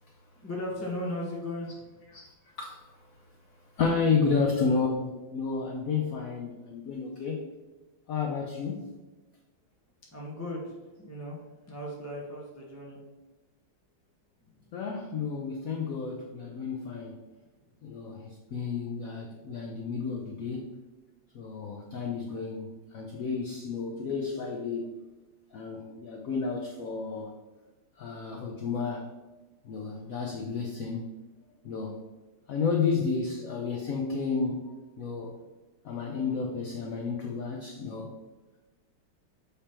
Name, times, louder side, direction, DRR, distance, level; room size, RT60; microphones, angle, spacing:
voice 1, 0.4-2.0 10.1-13.0 14.5-14.7 17.6-17.7, left 1 dB, 15° left, -4 dB, 0.6 m, -37 dB
voice 2, 2.1-2.8 3.8-7.5 8.1-8.8 14.7-17.1 17.8-20.7 21.3-25.0 25.5-27.3 28.0-29.1 29.6-31.1 31.6-32.0 32.5-35.3 35.8-38.1, left 5 dB, 70° left, 1 dB, 0.8 m, -31 dB
7.0 x 3.5 x 4.3 m, 1.1 s
omnidirectional pair, 2.3 m